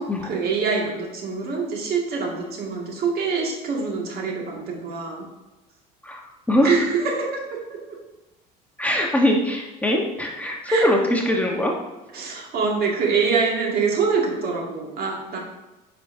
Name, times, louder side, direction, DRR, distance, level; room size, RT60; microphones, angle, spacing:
voice 1, 0.0-5.2 6.6-8.0 10.7-10.9 12.1-15.4, right 5 dB, 55° right, -1 dB, 2.1 m, -25 dB
voice 2, 6.0-6.7 8.8-11.7, left 1 dB, 5° left, -1 dB, 1.2 m, -22 dB
9.1 x 5.8 x 2.7 m, 1.1 s
supercardioid pair, 90°, 19 cm